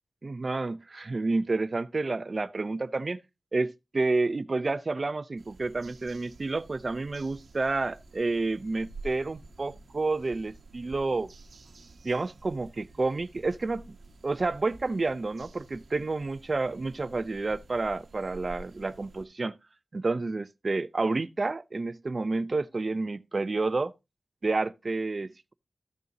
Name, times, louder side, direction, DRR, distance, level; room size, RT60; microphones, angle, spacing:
voice 1, 0.2-3.2 3.5-11.3 12.0-14.0 14.2-19.5 19.9-23.9 24.4-25.5, right 3 dB, 45° right, 0.6 m, -30 dB
sound 1, 5.4-19.3, right 2 dB, 90° right, 1.0 m, -50 dB
14.0 x 6.7 x 2.7 m
wide cardioid pair, 105°, 0 cm